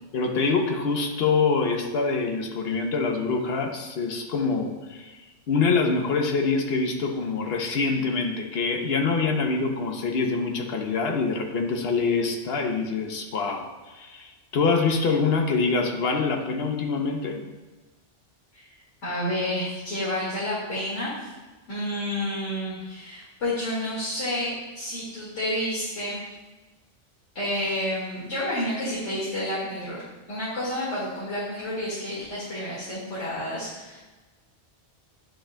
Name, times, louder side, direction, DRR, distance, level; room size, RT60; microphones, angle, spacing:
voice 1, 0.1-5.1 5.5-17.4, left 4 dB, 60° left, 3 dB, 1.0 m, -25 dB
voice 2, 19.0-21.3 21.7-26.2 27.3-30.0 30.3-34.0, left 1 dB, 80° left, -10 dB, 2.3 m, -30 dB
9.9 x 5.1 x 2.2 m, 1.2 s
omnidirectional pair, 1.2 m